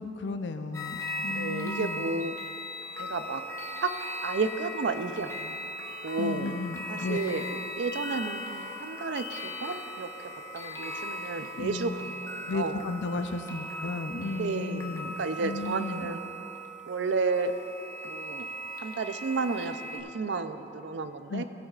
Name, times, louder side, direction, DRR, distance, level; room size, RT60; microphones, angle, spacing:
voice 1, 0.0-2.1 6.2-7.2 11.6-11.9 12.5-16.1 21.3-21.4, left 3 dB, 85° left, 9 dB, 0.5 m, -34 dB
sound 1, 0.7-20.0, left 1 dB, 15° left, 0.8 m, -38 dB
voice 2, 1.3-2.3 3.0-3.4 3.8-3.9 4.2-5.6 6.0-6.6 6.9-10.1 10.5-12.8 14.3-16.2 16.9-17.5 18.0-18.5 18.8-21.4, right 4 dB, 85° right, 10 dB, 0.5 m, -32 dB
15.5 x 9.3 x 2.4 m, 3.0 s
head